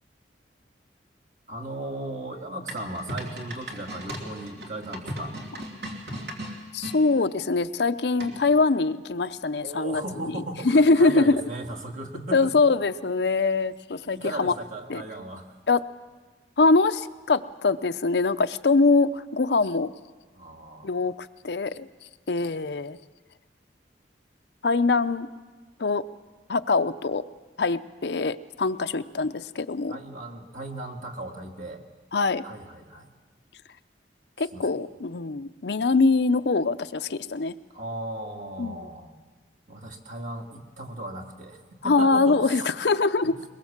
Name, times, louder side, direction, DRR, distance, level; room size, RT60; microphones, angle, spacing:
voice 1, 1.5-5.4 9.6-12.5 14.0-15.6 20.3-21.1 29.9-31.8 32.4-33.1 34.4-34.8 37.7-39.1 39.7-42.7 43.2-43.4, right 2 dB, 45° right, 2 dB, 2.1 m, -37 dB
sound 1, 2.7-7.0 8.2-8.6, right 1 dB, 60° right, 3.3 m, -37 dB
voice 2, 6.7-10.0 10.6-11.3 12.3-14.5 14.9-15.0 15.7-15.8 16.6-19.9 20.8-21.9 22.3-23.0 24.6-25.3 25.8-26.0 26.5-27.2 27.6-30.0 32.1-32.4 34.4-37.5 38.6-38.9 41.8-43.3, left 3 dB, 70° left, 11 dB, 0.6 m, -23 dB
22.5 x 21.5 x 7.3 m, 1.3 s
head